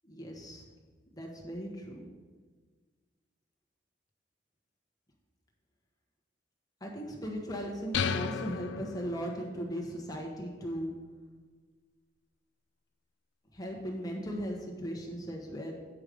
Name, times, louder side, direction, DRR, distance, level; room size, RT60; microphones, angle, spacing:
voice 1, 0.1-0.6 1.1-2.0 6.8-10.9 13.5-15.7, equal, 20° left, -1 dB, 1.3 m, -37 dB
sound 1, 7.9-9.6, left 6 dB, 70° left, 0.4 m, -34 dB
8.3 x 5.0 x 5.1 m, 1.5 s
head